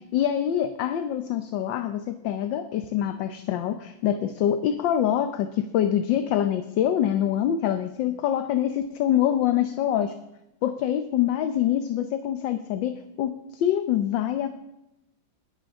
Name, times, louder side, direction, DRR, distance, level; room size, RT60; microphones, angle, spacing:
voice 1, 0.1-10.1 10.6-14.6, left 10 dB, 70° left, 9 dB, 1.4 m, -25 dB
21.5 x 11.5 x 3.6 m, 0.91 s
omnidirectional pair, 2.2 m